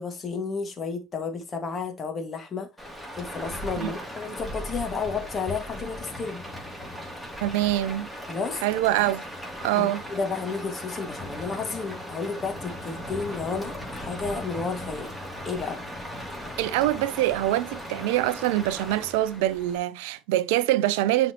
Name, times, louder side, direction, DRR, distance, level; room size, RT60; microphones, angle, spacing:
voice 1, 0.0-2.7 3.2-6.4 8.3-8.6 9.7-15.1 15.5-15.8, left 4 dB, 30° left, 1.9 m, -32 dB
Rain, 2.8-19.8, equal, ahead, 2.9 m, -38 dB
voice 2, 7.4-8.1 8.5-9.2 9.6-10.0 16.6-21.3, right 15 dB, 65° right, 0.5 m, -24 dB
10.5 x 4.2 x 3.0 m
figure-of-eight pair, 60°, 0 cm